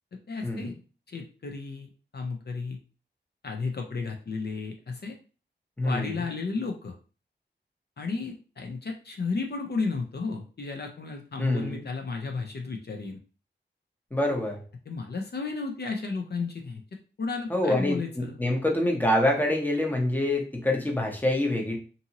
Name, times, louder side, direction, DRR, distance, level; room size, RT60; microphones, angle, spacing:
voice 1, 0.3-0.7 1.1-2.8 3.4-5.2 5.8-6.9 8.0-13.2 14.9-16.8 17.2-18.4, left 4 dB, 60° left, 3 dB, 0.5 m, -33 dB
voice 2, 5.8-6.1 11.4-11.8 14.1-14.6 17.5-21.8, left 1 dB, 10° left, 1 dB, 0.7 m, -26 dB
2.6 x 2.6 x 2.8 m, 0.36 s
wide cardioid pair, 70°, 19 cm